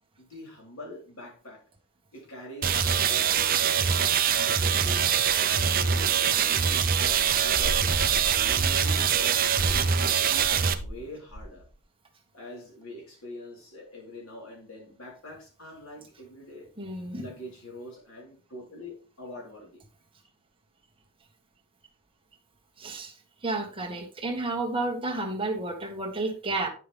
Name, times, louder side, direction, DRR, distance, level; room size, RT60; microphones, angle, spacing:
voice 1, 0.2-1.6 2.1-5.2 5.5-7.9 8.4-11.6 12.3-16.7 17.1-19.8, left 1 dB, 90° left, -2 dB, 4.0 m, -44 dB
sound 1, 2.6-10.7, right 7 dB, 40° right, 0.7 m, -24 dB
sound 2, 3.8-9.4, right 2 dB, 75° right, 1.2 m, -47 dB
sound 3, 7.2-11.0 11.3-11.7, equal, 55° left, 1.5 m, -37 dB
voice 2, 16.8-17.3 22.8-23.1 23.4-26.7, right 2 dB, 25° right, 2 dB, 1.6 m, -31 dB
9.9 x 5.7 x 3.5 m, 0.36 s
head